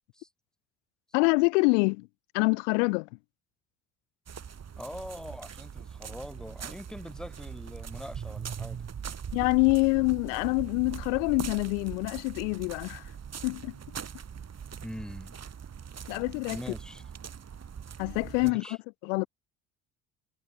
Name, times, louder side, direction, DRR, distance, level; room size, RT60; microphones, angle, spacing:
voice 1, 1.1-2.1 2.3-3.1 9.3-13.0 13.4-13.7 16.1-16.6 18.0-18.8 19.0-19.3, left 32 dB, 85° left, 2.1 m, -26 dB
sound 1, 4.3-18.5, right 7 dB, 45° right, 5.9 m, -41 dB
voice 2, 4.8-8.8 14.8-15.4 16.0-16.1 16.5-17.0 18.4-18.8, equal, ahead, 6.7 m, -42 dB
hypercardioid pair, 60°, 36 cm